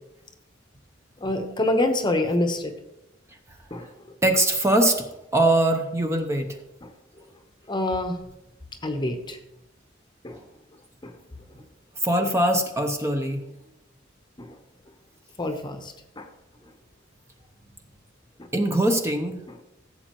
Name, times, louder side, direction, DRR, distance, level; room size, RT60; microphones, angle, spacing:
voice 1, 1.2-2.7 3.7-3.9 6.8-6.9 7.7-8.2 8.8-9.4 10.2-10.4 11.0-11.1 14.4-14.6 15.4-16.3, left 1 dB, 25° left, 6 dB, 0.9 m, -26 dB
voice 2, 4.2-5.1 5.3-6.6 10.3-10.4 12.0-13.4 18.5-19.4, right 1 dB, 15° right, 4 dB, 0.8 m, -22 dB
15.5 x 7.7 x 3.1 m, 0.91 s
head